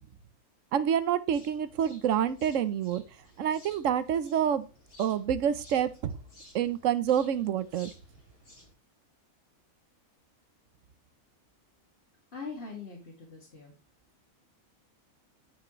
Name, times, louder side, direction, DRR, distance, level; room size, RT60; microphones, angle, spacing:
voice 1, 0.7-3.0 3.4-4.7 5.0-6.1 6.5-7.9, right 9 dB, 65° right, 14 dB, 1.1 m, -27 dB
sound 1, 1.3-8.7, left 1 dB, 85° left, 4.3 m, -56 dB
voice 2, 12.3-13.7, left 4 dB, 45° left, -3 dB, 2.2 m, -42 dB
10.5 x 5.9 x 3.1 m, 0.32 s
omnidirectional pair, 1.5 m